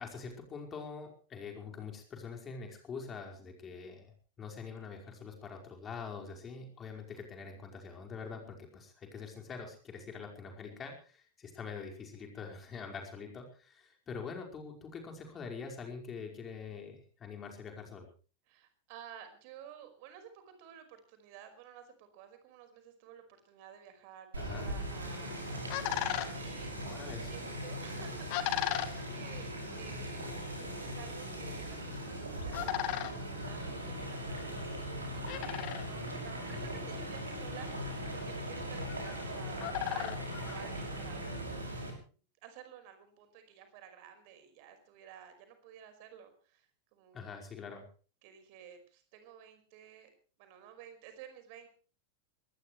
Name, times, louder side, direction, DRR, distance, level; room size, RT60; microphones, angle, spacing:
voice 1, 0.0-4.1 4.4-18.1 24.4-24.8 26.8-27.3 35.9-36.1 36.5-36.8 47.1-47.9, left 5 dB, 25° left, 3 dB, 5.2 m, -45 dB
voice 2, 18.5-26.9 27.2-29.5 29.8-30.2 30.8-41.7 42.4-47.4 48.2-50.1 50.4-51.7, right 9 dB, 45° right, 8 dB, 5.2 m, -53 dB
sound 1, 24.3-41.9, right 1 dB, 80° right, 6.4 m, -40 dB
sound 2, 25.0-41.3, left 13 dB, 45° left, 2.0 m, -41 dB
22.0 x 20.0 x 3.3 m, 0.39 s
figure-of-eight pair, 90°, 0 cm